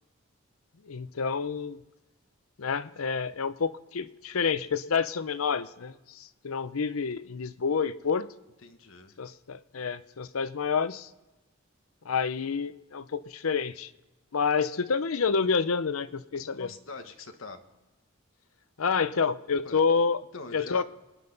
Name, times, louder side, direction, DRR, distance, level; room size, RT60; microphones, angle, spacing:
voice 1, 0.9-1.8 2.6-8.3 9.2-11.1 12.0-13.9 14.3-16.7 18.8-20.2 20.5-20.8, left 5 dB, 85° left, 14 dB, 0.7 m, -28 dB
voice 2, 8.6-9.1 16.4-17.6 19.6-19.8 20.3-20.8, left 3 dB, 70° left, 6 dB, 1.2 m, -43 dB
25.0 x 9.9 x 4.0 m, 1.1 s
head